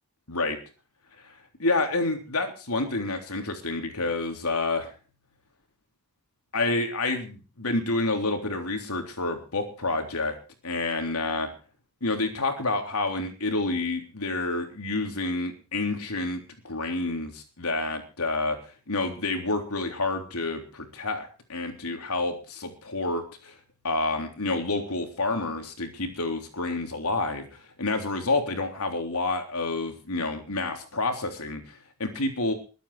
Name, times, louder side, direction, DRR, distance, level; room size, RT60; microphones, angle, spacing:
voice 1, 1.6-4.9 6.5-10.3 10.6-11.5 12.0-23.5 23.8-32.5, left 2 dB, 85° left, 5 dB, 3.5 m, -29 dB
21.5 x 9.2 x 4.9 m, 0.36 s
head